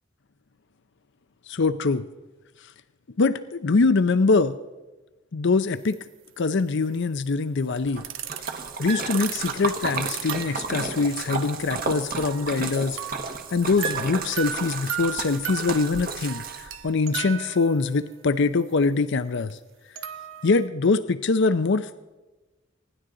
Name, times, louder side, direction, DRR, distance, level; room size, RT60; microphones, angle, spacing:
voice 1, 1.5-2.0 2.6-2.7 3.2-4.6 5.3-6.0 6.4-8.0 8.8-13.0 13.5-19.6 20.4-22.0, left 4 dB, 60° left, 12 dB, 0.6 m, -23 dB
sound 1, 5.9-6.0 6.3-6.4 8.0-8.5 8.9-10.8 11.3-12.7 13.0-18.1 19.5-19.6 20.0-20.7, right 9 dB, 65° right, 1.0 m, -36 dB
Splash splatter, 7.8-16.9, right 4 dB, 45° right, 1.4 m, -33 dB
26.0 x 11.0 x 3.8 m, 1.2 s
head